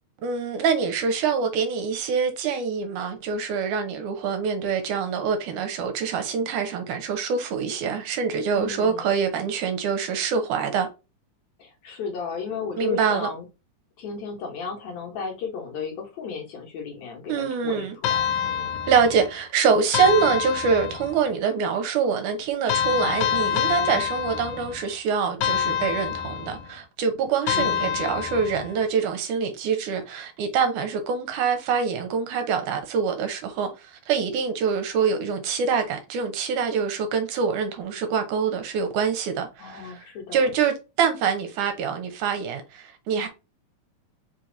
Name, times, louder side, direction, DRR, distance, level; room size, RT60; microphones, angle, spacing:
voice 1, 0.2-10.9 12.8-13.3 17.3-18.0 18.9-40.1 40.3-43.3, right 6 dB, 75° right, 2.1 m, -25 dB
voice 2, 8.5-9.1 11.6-13.5 14.0-18.8 27.5-28.0 39.6-40.5, left 5 dB, 65° left, 2.2 m, -34 dB
sound 1, 18.0-19.4 19.9-21.3 22.7-24.9 25.4-26.7 27.5-28.8, left 8 dB, 90° left, 1.6 m, -26 dB
5.1 x 2.8 x 3.7 m
omnidirectional pair, 3.8 m